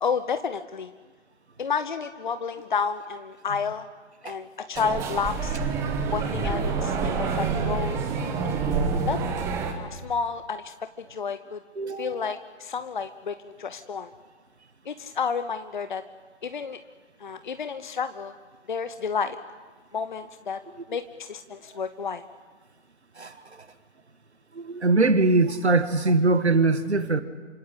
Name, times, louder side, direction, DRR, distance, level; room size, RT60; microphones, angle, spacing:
voice 1, 0.0-0.9 1.6-3.8 4.2-5.6 6.1-8.0 9.1-9.2 9.7-11.6 12.0-14.1 14.8-16.0 16.4-16.8 17.2-18.4 18.7-19.4 19.9-20.6 20.9-22.2, left 5 dB, 45° left, 11 dB, 1.0 m, -30 dB
sound 1, 4.8-9.7, right 4 dB, 10° right, 1.1 m, -27 dB
voice 2, 11.8-12.3 23.2-23.7 24.5-27.2, right 3 dB, 75° right, 11 dB, 1.6 m, -22 dB
28.0 x 26.0 x 8.3 m, 1.4 s
figure-of-eight pair, 140°, 34 cm